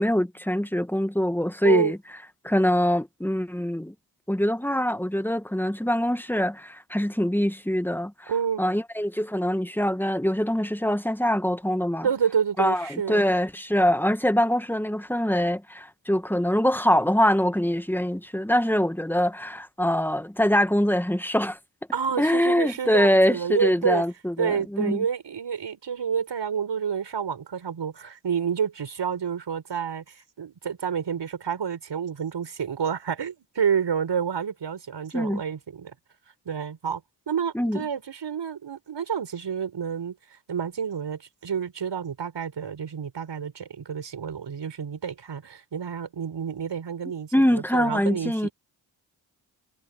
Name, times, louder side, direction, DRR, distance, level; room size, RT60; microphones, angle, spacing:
voice 1, 0.0-2.0 2.4-3.9 4.3-8.3 8.6-12.1 12.6-21.6 22.2-25.0 35.1-35.4 37.5-37.8 47.3-48.5, equal, 5° left, 1.6 m, -24 dB
voice 2, 1.6-1.9 8.3-8.6 12.0-13.2 21.9-24.0 24.4-35.9 36.5-37.0 37.3-40.1 40.5-48.5, right 7 dB, 60° right, 5.9 m, -29 dB
cardioid pair, 55°, 47 cm